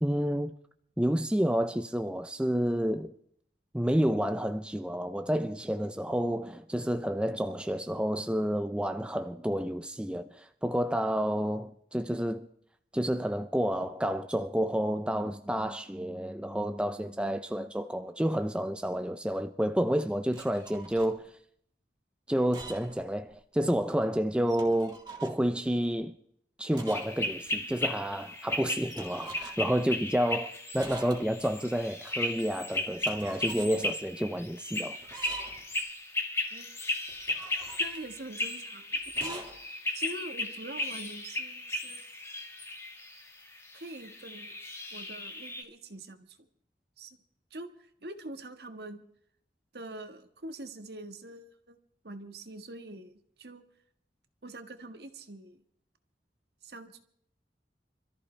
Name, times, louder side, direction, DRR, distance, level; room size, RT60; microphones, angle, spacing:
voice 1, 0.0-0.5 1.0-3.1 3.7-12.5 12.9-21.3 22.3-26.1 26.6-35.0, equal, 5° right, 0.5 m, -30 dB
sound 1, 20.3-21.1 22.3-23.0 23.3-23.4 24.4-25.4 26.7-27.2 27.5-27.6 28.9-29.8 30.8-31.5 32.9-33.7 35.0-35.7 37.1-38.1 39.1-39.6, right 3 dB, 25° right, 3.2 m, -44 dB
sound 2, 26.9-45.6, left 2 dB, 15° left, 1.7 m, -36 dB
voice 2, 37.8-39.7 39.9-42.1 43.7-44.6 44.9-46.5 47.0-47.2 47.5-49.0 49.7-51.8 52.0-53.6 54.4-55.6 56.6-57.0, right 2 dB, 65° right, 1.5 m, -44 dB
26.5 x 14.0 x 3.3 m
head